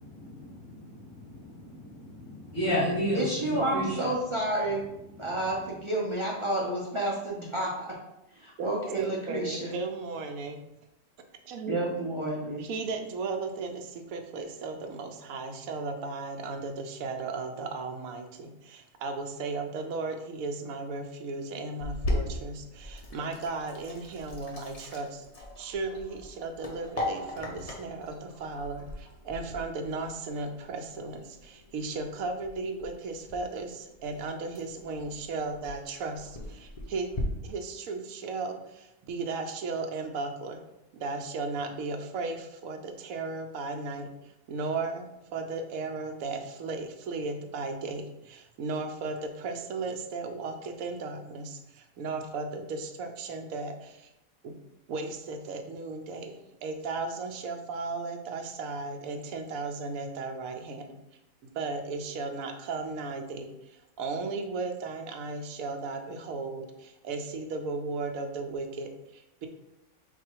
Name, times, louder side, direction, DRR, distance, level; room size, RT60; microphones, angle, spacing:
voice 1, 0.0-3.2 3.5-4.1, equal, 65° left, -9 dB, 1.6 m, -32 dB
voice 2, 3.1-4.8 5.2-7.9 8.4-9.8 11.7-12.6, right 1 dB, 40° right, -4 dB, 0.4 m, -30 dB
voice 3, 8.6-10.6 11.5-11.8 12.6-25.3 25.6-37.1 37.4-40.6 40.9-54.1 54.4-54.5 54.9-61.0 61.4-69.5, right 3 dB, 80° right, 5 dB, 1.0 m, -35 dB
Sink (filling or washing), 21.8-37.2, left 1 dB, 40° left, 0.5 m, -40 dB
4.2 x 2.4 x 4.4 m, 0.89 s
omnidirectional pair, 1.5 m